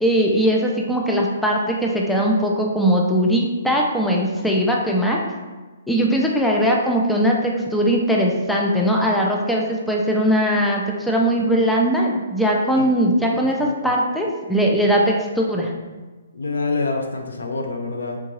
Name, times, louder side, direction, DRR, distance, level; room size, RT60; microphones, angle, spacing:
voice 1, 0.0-5.2 5.9-13.6 13.8-15.7, equal, ahead, -2 dB, 0.4 m, -20 dB
voice 2, 13.3-13.7 16.3-18.2, left 3 dB, 85° left, 3 dB, 0.5 m, -26 dB
3.6 x 2.6 x 3.0 m, 1.3 s
hypercardioid pair, 150°, 0 cm